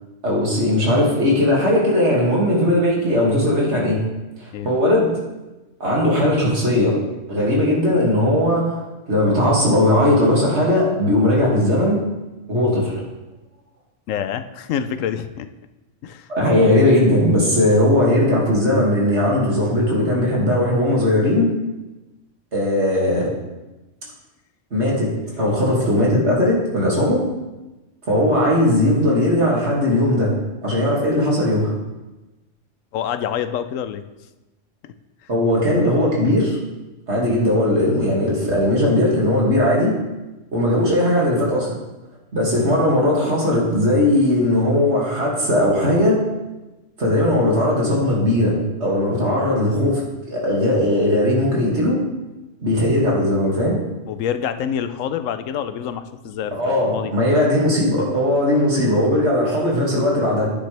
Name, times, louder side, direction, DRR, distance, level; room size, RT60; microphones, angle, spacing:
voice 1, 0.2-4.0 4.4-5.1 5.8-7.0 7.3-8.8 9.1-12.0 12.5-13.0 16.3-21.5 22.5-23.3 24.7-25.1 25.4-27.2 28.1-30.3 30.6-31.7 35.3-36.6 37.1-39.9 40.5-41.7 42.3-46.2 47.0-52.0 52.6-53.8 56.5-60.5, left 1 dB, 60° right, -4 dB, 2.6 m, -18 dB
voice 2, 14.1-15.5 16.0-16.3 24.1-24.2 32.9-34.0 34.8-34.9 54.1-57.1, left 9 dB, 90° left, 10 dB, 1.0 m, -27 dB
10.0 x 8.9 x 3.4 m, 1.1 s
omnidirectional pair, 1.3 m